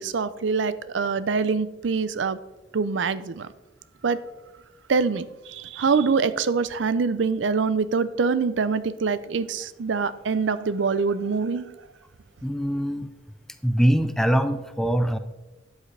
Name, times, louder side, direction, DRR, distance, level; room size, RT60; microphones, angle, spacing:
voice 1, 0.0-2.4 2.7-3.5 4.0-4.2 4.9-11.7, right 5 dB, 70° right, 15 dB, 0.5 m, -24 dB
voice 2, 12.4-13.1 13.6-15.2, equal, ahead, 9 dB, 0.5 m, -23 dB
12.5 x 8.2 x 3.3 m, 1.1 s
head